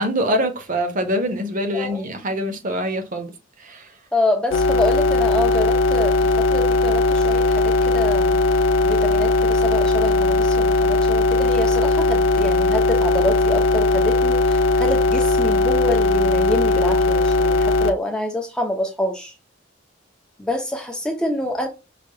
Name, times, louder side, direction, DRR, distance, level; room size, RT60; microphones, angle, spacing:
voice 1, 0.0-3.3 3.6-3.9, equal, 40° right, 0.7 m, -24 dB
voice 2, 1.7-2.0 4.1-8.4 8.8-19.3 20.4-21.7, left 1 dB, 5° left, 0.5 m, -26 dB
sound 1, 4.5-17.9, left 2 dB, 75° left, 0.3 m, -18 dB
4.9 x 2.2 x 2.7 m
head